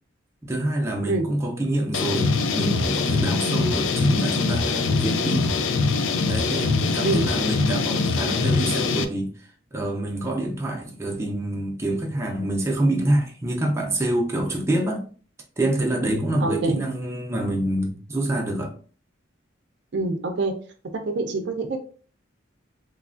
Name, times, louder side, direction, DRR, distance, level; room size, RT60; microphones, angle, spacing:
voice 1, 0.4-5.5 6.3-9.4 9.7-15.0 15.6-18.7, right 1 dB, 15° right, 0.5 m, -26 dB
sound 1, 1.9-9.0, left 4 dB, 75° left, 0.3 m, -23 dB
voice 2, 16.4-16.8 19.9-20.6 20.9-21.8, right 3 dB, 60° right, 0.5 m, -25 dB
3.1 x 2.3 x 2.4 m
head